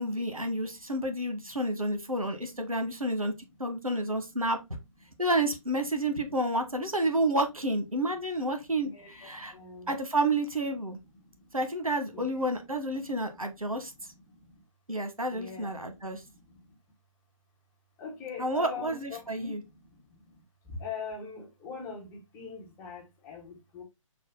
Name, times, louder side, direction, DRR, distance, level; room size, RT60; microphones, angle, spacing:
voice 1, 0.0-3.3 3.6-4.6 5.2-9.5 9.9-11.0 11.5-13.9 14.9-16.2 18.4-19.6, right 1 dB, 90° right, 1.3 m, -30 dB
voice 2, 8.9-9.9 12.1-12.2 15.3-15.7 18.0-19.5 20.8-23.8, left 5 dB, 15° left, 1.1 m, -41 dB
5.9 x 2.4 x 3.7 m
figure-of-eight pair, 140°, 18 cm